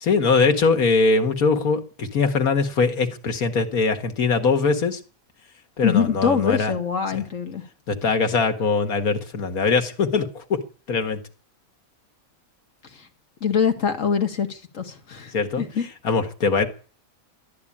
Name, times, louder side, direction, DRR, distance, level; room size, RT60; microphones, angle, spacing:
voice 1, 0.0-5.0 5.8-6.7 7.1-7.2 7.9-10.6 10.9-11.2 15.3-15.6 16.0-16.7, left 4 dB, 90° left, 2.1 m, -21 dB
voice 2, 5.8-7.6 12.9-13.1 13.4-15.9, left 6 dB, 65° left, 2.2 m, -24 dB
13.5 x 10.5 x 8.6 m
omnidirectional pair, 1.5 m